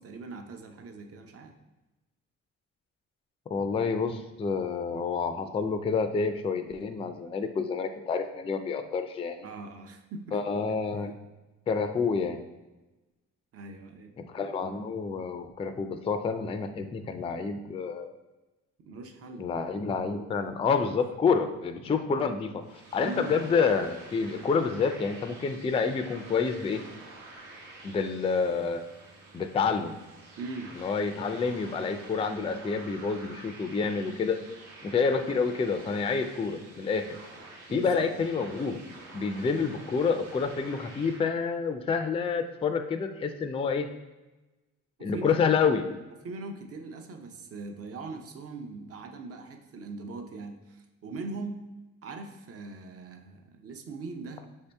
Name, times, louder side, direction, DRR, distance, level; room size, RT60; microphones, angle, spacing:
voice 1, 0.0-1.5 9.4-10.4 10.9-11.0 13.5-14.1 18.9-19.5 20.8-21.0 23.0-23.4 30.4-30.7 37.7-38.1 45.0-45.4 46.2-51.6 52.0-54.4, right 3 dB, 50° right, 5 dB, 0.7 m, -40 dB
voice 2, 3.5-9.4 10.3-11.1 11.7-12.4 14.3-18.1 19.4-22.5 22.9-26.8 27.8-28.8 29.3-30.0 30.8-34.4 34.8-37.0 37.7-38.8 39.1-43.9 45.0-45.8, left 5 dB, 20° left, 8 dB, 0.3 m, -28 dB
sound 1, 22.6-41.2, right 2 dB, 85° right, 1.2 m, -48 dB
5.2 x 2.7 x 3.3 m, 1.1 s
cardioid pair, 90°, 30 cm